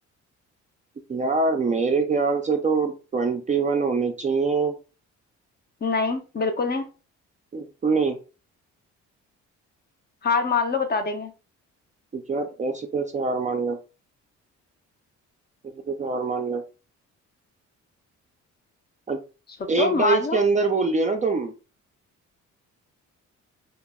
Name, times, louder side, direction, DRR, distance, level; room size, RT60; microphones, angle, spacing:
voice 1, 1.1-4.7 7.5-8.2 12.1-13.8 15.9-16.6 19.1-19.2 19.7-21.5, right 4 dB, 25° right, 5 dB, 0.4 m, -24 dB
voice 2, 5.8-6.9 10.2-11.3 19.6-20.4, left 4 dB, 35° left, 6 dB, 0.5 m, -24 dB
2.1 x 2.0 x 3.4 m, 0.33 s
cardioid pair, 90°, 30 cm